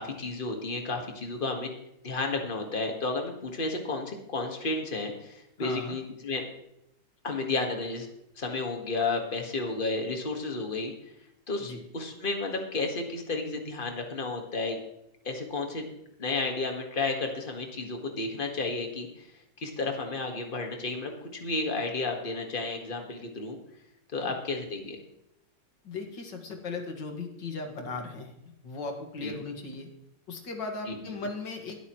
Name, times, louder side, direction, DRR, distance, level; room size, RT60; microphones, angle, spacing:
voice 1, 0.0-1.7 2.0-6.4 7.2-8.1 8.4-10.9 11.5-14.8 15.2-15.9 16.2-19.3 19.6-23.6 24.1-25.0 29.2-29.4 30.8-31.1, left 3 dB, 30° left, 3 dB, 1.8 m, -32 dB
voice 2, 5.6-5.9 11.6-11.8 24.2-24.3 25.8-28.3 28.6-29.9 30.3-31.8, left 3 dB, 75° left, 3 dB, 2.5 m, -37 dB
22.0 x 8.2 x 3.1 m, 0.81 s
omnidirectional pair, 2.0 m